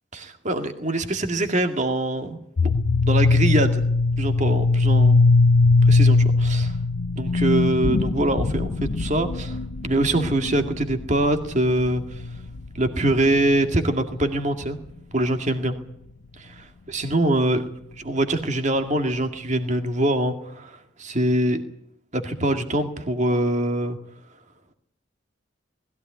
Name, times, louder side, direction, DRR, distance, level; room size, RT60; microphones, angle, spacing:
voice 1, 0.1-2.7 3.0-3.9 4.2-5.3 5.8-6.8 7.1-12.2 12.7-14.8 15.1-15.7 16.4-17.7 18.0-21.6 22.1-24.0, right 1 dB, 40° right, 6 dB, 2.0 m, -24 dB
sound 1, 2.6-13.8, left 3 dB, 80° left, 0.7 m, -20 dB
20.0 x 15.5 x 9.4 m, 0.71 s
head